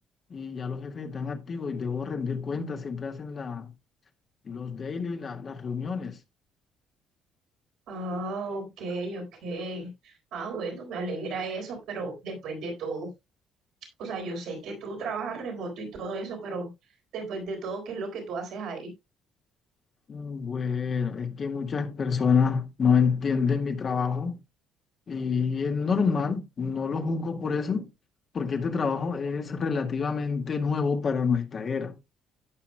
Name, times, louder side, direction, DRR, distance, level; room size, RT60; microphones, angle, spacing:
voice 1, 0.3-3.7 4.4-6.2 20.1-24.4 25.1-27.9 28.3-32.0, left 5 dB, 45° left, 1.8 m, -28 dB
voice 2, 7.9-13.1 14.0-16.7 17.1-18.9, right 3 dB, 70° right, 4.0 m, -34 dB
16.5 x 5.9 x 2.2 m
supercardioid pair, 60°, 0 cm